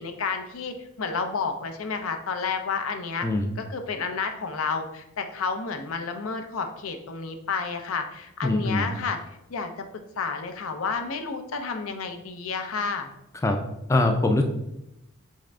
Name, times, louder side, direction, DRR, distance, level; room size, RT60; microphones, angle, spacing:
voice 1, 0.0-3.3 3.7-9.2 9.5-13.1, left 5 dB, 85° left, 7 dB, 0.5 m, -31 dB
voice 2, 8.4-8.9 13.3-13.6 13.9-14.4, left 2 dB, 15° left, 4 dB, 0.3 m, -23 dB
4.1 x 3.7 x 3.3 m, 0.85 s
head